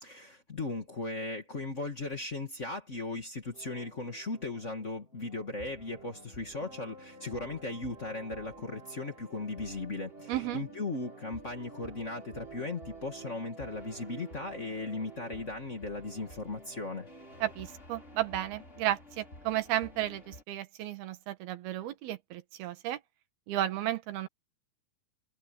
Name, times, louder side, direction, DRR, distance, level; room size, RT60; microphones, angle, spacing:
voice 1, 0.0-17.1, left 3 dB, 45° left, 0.9 m, -37 dB
sound 1, 3.5-17.5, right 5 dB, 55° right, 6.8 m, -51 dB
sound 2, 5.6-20.4, left 2 dB, 20° left, 4.1 m, -54 dB
voice 2, 10.3-10.6 17.4-23.0 23.5-24.3, right 13 dB, 80° right, 3.4 m, -33 dB
omnidirectional pair, 4.5 m